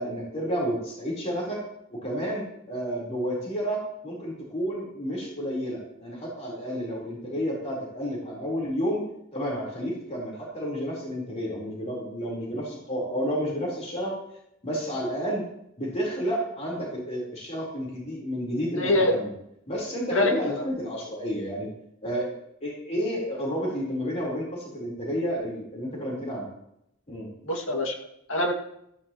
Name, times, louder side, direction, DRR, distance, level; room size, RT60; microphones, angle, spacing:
voice 1, 0.0-1.6 1.9-9.0 9.3-14.1 14.6-15.4 15.8-19.3 19.7-21.7 22.0-22.3 22.6-26.5 27.1-27.3, equal, 35° left, -3 dB, 4.0 m, -31 dB
voice 2, 18.8-19.2 20.1-20.6 27.4-28.5, left 2 dB, 80° left, 2 dB, 2.1 m, -25 dB
15.0 x 14.0 x 3.0 m, 0.77 s
head